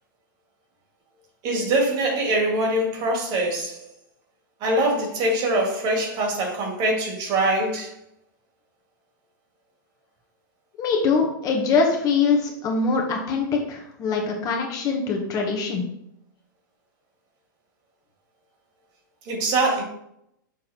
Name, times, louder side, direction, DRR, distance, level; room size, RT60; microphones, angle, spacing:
voice 1, 1.4-3.8 4.6-7.9 19.2-19.8, right 1 dB, 40° right, 0 dB, 2.4 m, -23 dB
voice 2, 10.8-15.8, left 4 dB, 35° left, 1 dB, 1.3 m, -23 dB
6.5 x 3.7 x 4.3 m, 0.76 s
hypercardioid pair, 115°, 11 cm